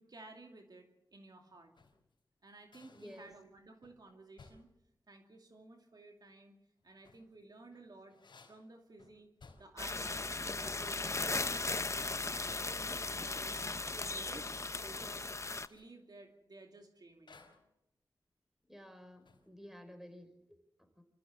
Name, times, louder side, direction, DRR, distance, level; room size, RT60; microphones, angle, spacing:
voice 1, 0.0-1.7 2.4-4.7 5.1-6.6 6.8-8.2 8.5-9.3 9.6-14.5 14.8-15.3 15.7-17.4, right 2 dB, 60° right, 3 dB, 2.6 m, -55 dB
sound 1, 1.5-2.1 2.7-3.5 3.8-4.0 4.4-4.8 6.8-7.3 7.7-9.9 10.2-10.5 10.8-11.8 12.7-13.1 13.3-13.4 14.4-14.7 15.6-16.0 17.3-17.7 18.8-19.6, left 4 dB, 75° left, 4.0 m, -61 dB
voice 2, 2.9-3.3 18.7-21.0, equal, 5° right, 8 dB, 4.8 m, -53 dB
sound 2, 9.8-15.7, left 3 dB, 40° left, 0.8 m, -37 dB
26.0 x 14.5 x 7.3 m, 0.87 s
cardioid pair, 45°, 8 cm